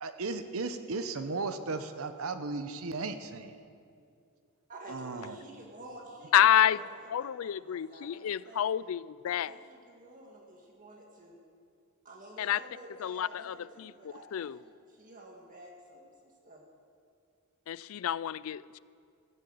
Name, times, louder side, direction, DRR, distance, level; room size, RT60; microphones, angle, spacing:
voice 1, 0.0-3.6 4.9-5.4, right 3 dB, 70° right, 9 dB, 0.8 m, -36 dB
voice 2, 4.7-8.7 9.3-11.4 12.1-16.6, right 1 dB, 40° right, 0 dB, 1.8 m, -50 dB
voice 3, 6.3-6.8 7.1-9.5 12.4-12.6 13.0-14.6 17.7-18.8, left 10 dB, 65° left, 20 dB, 0.3 m, -29 dB
14.5 x 9.8 x 7.9 m, 2.3 s
head